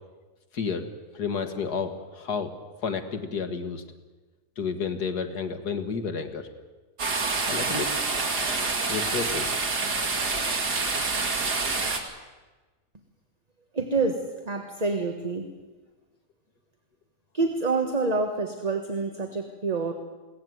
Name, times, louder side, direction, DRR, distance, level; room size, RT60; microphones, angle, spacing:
voice 1, 0.5-0.9 1.1-2.5 2.8-3.8 4.6-6.5 7.5-8.0 8.9-9.5, left 5 dB, 80° left, 8 dB, 2.2 m, -31 dB
sound 1, 7.0-12.0, right 3 dB, 85° right, 3.1 m, -27 dB
voice 2, 13.7-15.5 17.3-19.9, right 3 dB, 25° right, 5 dB, 1.5 m, -27 dB
22.0 x 17.5 x 9.4 m, 1.3 s
omnidirectional pair, 1.7 m